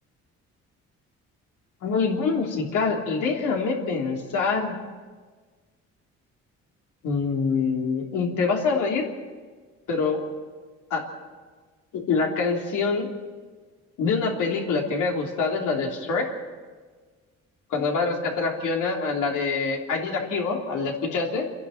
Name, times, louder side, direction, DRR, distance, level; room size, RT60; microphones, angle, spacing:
voice 1, 1.8-4.8 7.0-9.0 9.9-10.3 10.9-11.1 11.9-13.1 14.0-16.4 17.7-21.5, left 4 dB, 85° left, 0 dB, 3.4 m, -25 dB
28.5 x 11.5 x 9.1 m, 1.5 s
cardioid pair, 90°, 30 cm